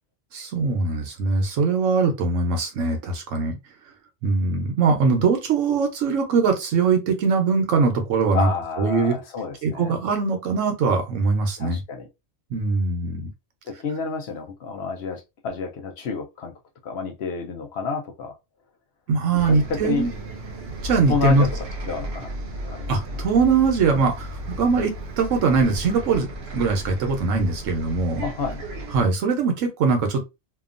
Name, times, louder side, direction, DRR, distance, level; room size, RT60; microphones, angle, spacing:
voice 1, 0.3-3.6 4.2-8.5 8.8-9.2 9.6-11.8 12.5-13.3 19.1-20.1 20.8-21.5 22.9-26.3 26.5-28.2 28.9-30.2, right 4 dB, 85° right, 1.2 m, -21 dB
voice 2, 8.3-10.0 11.6-12.1 13.7-16.5 16.8-18.4 19.3-20.1 21.1-21.5 21.8-22.3 22.6-23.2 28.2-28.7, left 5 dB, 65° left, 0.8 m, -30 dB
Bus, 19.3-29.0, right 1 dB, 65° right, 0.9 m, -34 dB
2.8 x 2.3 x 2.4 m
omnidirectional pair, 1.3 m